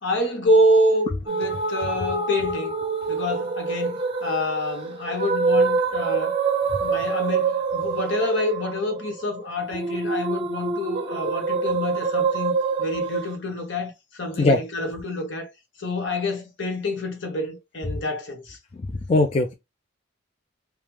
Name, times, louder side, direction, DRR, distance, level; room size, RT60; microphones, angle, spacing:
voice 1, 0.0-2.7 3.1-6.4 6.8-15.5 15.8-18.6, left 1 dB, 65° left, 0.9 m, -27 dB
sound 1, 1.3-13.3, right 4 dB, 25° right, 0.6 m, -26 dB
voice 2, 19.1-19.5, left 2 dB, 30° left, 0.4 m, -19 dB
3.1 x 2.3 x 3.2 m
head